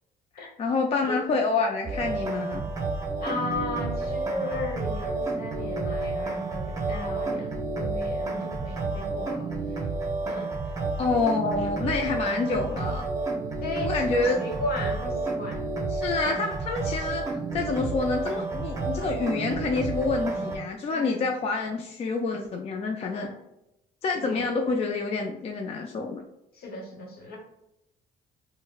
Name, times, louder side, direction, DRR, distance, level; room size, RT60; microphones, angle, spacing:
voice 1, 0.4-2.6 11.0-13.0 13.8-14.4 15.9-17.2 17.5-23.3 24.0-26.2, left 3 dB, 35° left, 2 dB, 0.4 m, -27 dB
sound 1, 1.8-20.6, right 3 dB, 20° right, 0.7 m, -30 dB
voice 2, 3.2-9.8 10.3-10.8 13.6-15.7 20.9-21.3 23.1-23.4 24.1-24.5 26.5-27.4, left 2 dB, 65° left, 1 dB, 1.2 m, -35 dB
4.9 x 2.1 x 2.4 m, 0.87 s
cardioid pair, 110°, 17 cm